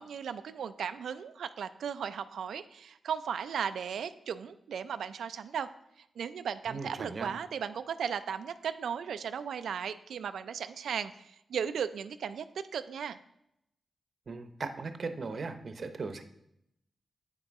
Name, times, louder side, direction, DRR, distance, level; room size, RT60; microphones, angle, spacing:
voice 1, 0.0-5.7 6.2-13.2, right 7 dB, 90° right, 11 dB, 0.3 m, -36 dB
voice 2, 6.7-7.3 14.3-16.2, right 4 dB, 55° right, 9 dB, 0.7 m, -38 dB
8.9 x 5.9 x 4.1 m, 0.80 s
cardioid pair, 80°, 0 cm